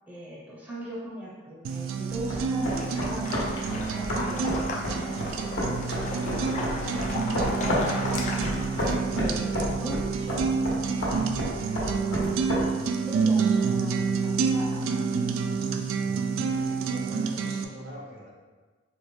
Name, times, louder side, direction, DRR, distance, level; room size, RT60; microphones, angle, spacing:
voice 1, 0.1-3.3 3.9-5.8 6.2-7.0 7.3-8.3 9.1-10.6 11.8-12.4 13.1-15.0, right 1 dB, 10° right, -7 dB, 0.7 m, -40 dB
sound 1, 1.6-17.6, right 5 dB, 90° right, 0.3 m, -28 dB
sound 2, 2.1-12.6, left 1 dB, 75° left, 1.1 m, -31 dB
sound 3, 2.6-8.9, left 2 dB, 40° left, 0.4 m, -36 dB
voice 2, 16.0-18.3, equal, 50° right, -3 dB, 0.8 m, -43 dB
4.2 x 2.4 x 3.3 m, 1.3 s
head